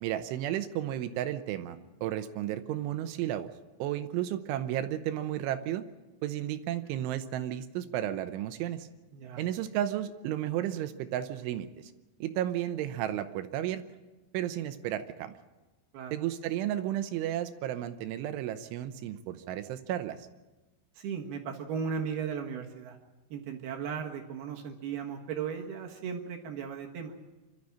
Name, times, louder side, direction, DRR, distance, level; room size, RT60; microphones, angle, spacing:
voice 1, 0.0-3.5 3.8-5.8 6.2-8.9 9.4-11.9 12.2-13.8 14.3-15.3 16.1-20.2, right 12 dB, 80° right, 10 dB, 3.1 m, -33 dB
voice 2, 21.0-23.0 23.3-27.1, right 7 dB, 65° right, 2 dB, 3.0 m, -36 dB
27.0 x 13.0 x 8.6 m, 1.1 s
omnidirectional pair, 5.7 m